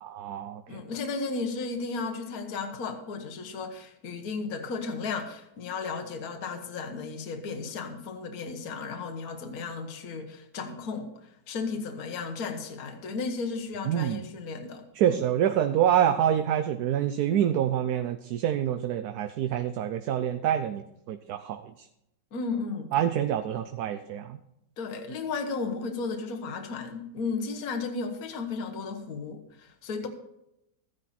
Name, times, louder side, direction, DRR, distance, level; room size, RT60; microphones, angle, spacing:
voice 1, 0.0-0.8 13.9-14.2 15.0-21.6 22.9-24.4, right 10 dB, 70° right, 9 dB, 1.1 m, -26 dB
voice 2, 0.7-15.1 22.3-22.9 24.8-30.1, left 4 dB, 55° left, 5 dB, 1.6 m, -34 dB
14.0 x 10.0 x 4.3 m, 0.83 s
omnidirectional pair, 1.9 m